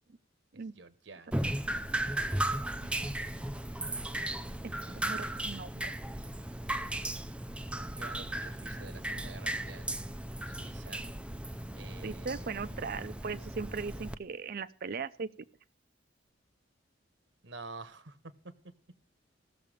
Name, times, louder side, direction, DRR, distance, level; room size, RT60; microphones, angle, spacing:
voice 1, 0.7-1.5 4.9-5.4 8.0-9.9 10.5-11.0 11.7-12.5 17.4-18.2 18.4-18.5, right 3 dB, 70° right, 12 dB, 1.1 m, -49 dB
Drip, 1.3-14.2, right 1 dB, 5° right, 0.5 m, -36 dB
voice 2, 5.0-5.9 12.0-15.3, right 5 dB, 50° right, 14 dB, 0.6 m, -38 dB
16.0 x 6.9 x 5.0 m, 0.43 s
head